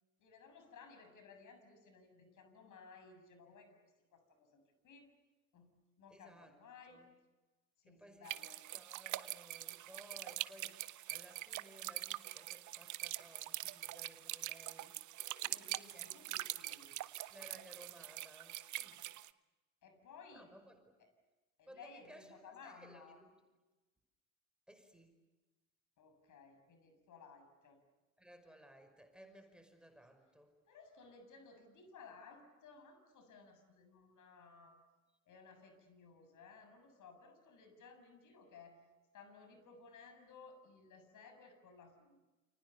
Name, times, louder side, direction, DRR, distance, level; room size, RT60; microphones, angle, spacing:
voice 1, 0.2-3.8 4.1-5.1 5.5-5.7 6.0-7.0 7.8-8.6 15.3-17.0 19.8-20.5 21.6-23.2 26.0-27.8 30.7-34.8 35.3-38.8 39.1-42.2, left 5 dB, 50° left, 7 dB, 7.1 m, -58 dB
voice 2, 6.1-6.6 6.9-7.1 7.9-15.0 15.9-16.1 16.9-17.0 17.3-19.0 20.3-20.9 21.7-23.3 24.7-25.1 28.2-30.6, equal, ahead, 6 dB, 5.5 m, -59 dB
sound 1, 8.2-19.3, right 15 dB, 45° right, 1.0 m, -44 dB
29.5 x 28.0 x 6.9 m, 1.2 s
figure-of-eight pair, 55°, 40 cm